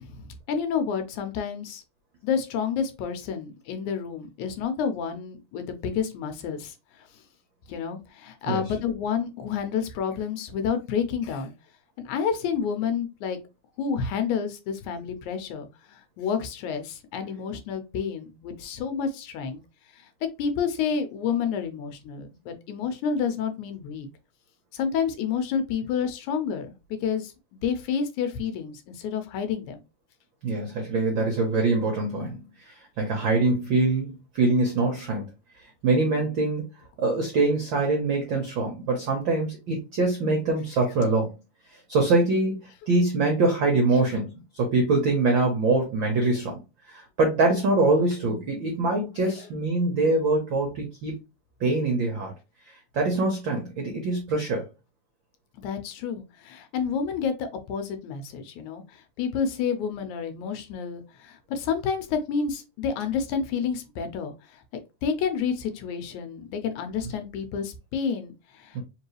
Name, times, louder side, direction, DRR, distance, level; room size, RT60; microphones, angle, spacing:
voice 1, 0.0-1.8 2.2-6.7 7.7-11.5 12.0-13.4 13.8-19.6 20.4-24.1 24.7-26.7 27.0-27.3 27.6-29.8 55.6-64.3 65.0-68.8, left 6 dB, 85° left, 2.0 m, -29 dB
voice 2, 30.4-35.2 35.8-36.7 37.0-41.3 41.7-46.6 46.9-51.1 51.6-52.3 52.7-54.7 68.7-68.8, right 3 dB, 75° right, 1.1 m, -24 dB
4.5 x 3.0 x 3.1 m
omnidirectional pair, 3.5 m